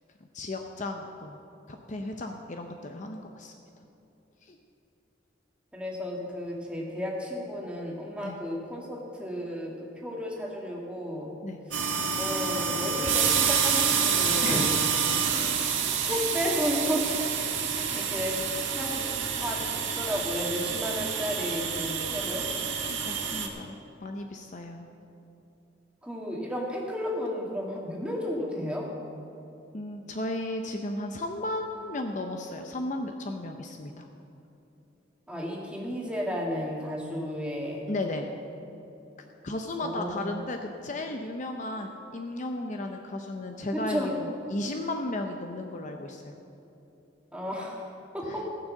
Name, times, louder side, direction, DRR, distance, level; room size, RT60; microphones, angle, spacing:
voice 1, 0.3-1.4 1.7-3.5 4.4-4.6 8.2-8.4 11.4-11.6 14.4-14.9 22.9-23.8 24.0-24.9 29.7-34.1 37.9-38.3 39.4-46.4 48.3-48.5, left 2 dB, 40° left, 4 dB, 0.6 m, -34 dB
voice 2, 5.7-11.3 11.7-11.8 12.2-14.8 15.4-15.7 16.0-17.1 17.7-18.4 18.7-19.1 19.3-19.6 19.9-22.5 26.0-28.9 35.3-37.9 39.8-40.4 43.7-44.2 47.3-47.9 48.1-48.5, equal, 5° right, -2 dB, 1.8 m, -33 dB
sound 1, 11.7-23.5, right 6 dB, 85° right, 1.4 m, -28 dB
16.0 x 6.3 x 7.4 m, 2.9 s
head